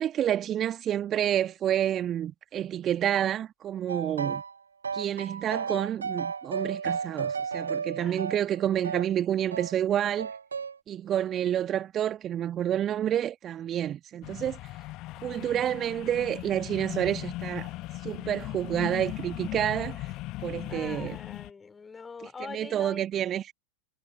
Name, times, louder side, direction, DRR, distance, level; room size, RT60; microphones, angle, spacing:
voice 1, 0.0-4.4 4.9-10.3 10.9-14.6 15.2-17.7 18.0-20.1 20.4-21.2 22.5-23.5, right 10 dB, 30° right, 1.9 m, -29 dB
sound 1, 3.9-4.5 4.8-9.1 9.5-9.8 10.2-10.8, right 6 dB, 75° right, 1.0 m, -33 dB
sound 2, 14.2-21.5, left 19 dB, 40° left, 1.4 m, -38 dB
voice 2, 20.7-23.1, left 5 dB, 15° left, 4.5 m, -43 dB
figure-of-eight pair, 90°, 0 cm